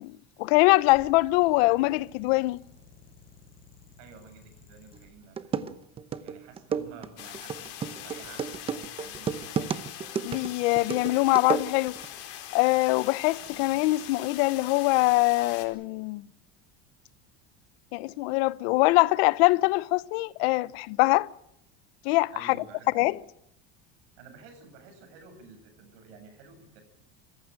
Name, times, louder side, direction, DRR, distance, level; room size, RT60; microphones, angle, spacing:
voice 1, 0.0-2.6 10.2-12.0 12.5-16.2 17.9-21.3 22.0-22.6 22.9-23.1, left 21 dB, 70° left, 0.9 m, -23 dB
sound 1, 0.7-5.1, left 5 dB, 25° left, 6.4 m, -54 dB
voice 2, 4.0-5.8 6.1-9.7 13.4-13.6 22.3-23.1 24.2-26.8, right 4 dB, 85° right, 7.8 m, -51 dB
sound 2, 4.9-5.0 5.4-12.1, right 7 dB, 15° right, 0.8 m, -33 dB
sound 3, 7.2-15.7, left 11 dB, 45° left, 4.3 m, -42 dB
27.0 x 15.0 x 8.8 m
cardioid pair, 175°, 32 cm